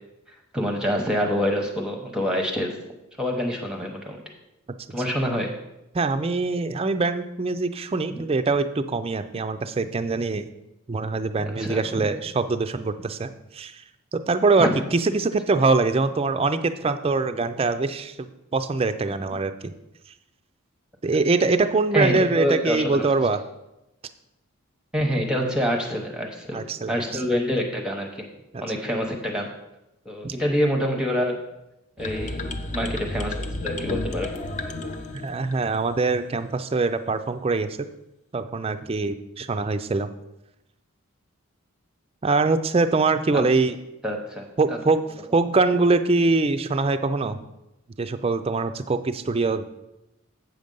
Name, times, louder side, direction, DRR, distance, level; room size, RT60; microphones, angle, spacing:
voice 1, 0.5-2.8 3.2-4.2 4.9-5.5 8.2-8.3 11.4-12.1 14.6-14.8 21.9-23.1 24.9-28.3 28.6-29.5 30.1-31.4 32.0-34.3 43.3-43.4 44.0-44.8, equal, 5° right, 2 dB, 0.8 m, -26 dB
voice 2, 5.9-10.4 10.9-13.8 14.1-19.7 21.0-23.4 26.5-27.2 28.5-28.6 30.2-30.3 35.1-37.7 38.3-40.1 42.2-43.8 44.6-45.0 45.3-47.4 48.0-49.6, right 3 dB, 25° right, 10 dB, 0.4 m, -23 dB
sound 1, 32.0-35.9, left 2 dB, 30° left, 0.6 m, -32 dB
7.8 x 6.5 x 5.3 m, 0.92 s
head